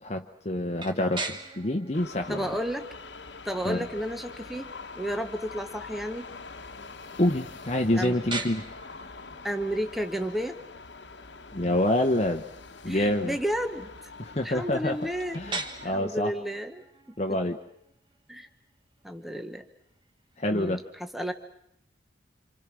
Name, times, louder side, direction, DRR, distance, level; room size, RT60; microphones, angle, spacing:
voice 1, 0.0-2.5 3.6-3.9 7.2-8.7 11.5-12.4 12.8-13.4 14.2-15.0 15.3-16.3 17.2-17.6 20.4-20.8, left 1 dB, 35° left, 5 dB, 1.0 m, -27 dB
sound 1, 0.8-20.5, right 3 dB, 25° right, 1.8 m, -43 dB
sound 2, 1.9-16.0, left 4 dB, 75° left, 1.3 m, -44 dB
voice 2, 2.3-2.9 3.4-4.7 4.9-6.3 8.0-8.2 9.4-10.6 12.9-13.9 14.4-16.8 17.3-17.4 18.3-18.5 19.0-19.6 20.5-21.3, equal, ahead, 7 dB, 1.0 m, -32 dB
27.5 x 27.0 x 6.2 m, 0.73 s
head